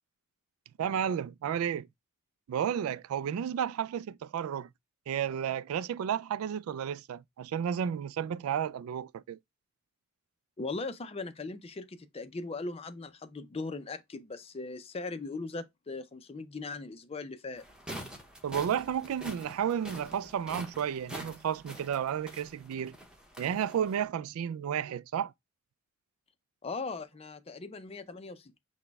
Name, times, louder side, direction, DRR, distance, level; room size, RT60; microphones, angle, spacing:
voice 1, 0.8-1.9 2.5-4.7 5.1-9.4 18.4-22.9 23.4-25.3, right 8 dB, 80° right, 0.3 m, -32 dB
voice 2, 10.6-17.6 26.6-28.6, left 3 dB, 30° left, 0.4 m, -39 dB
sound 1, 17.6-24.0, equal, 5° right, 0.8 m, -46 dB
5.9 x 2.1 x 3.3 m
head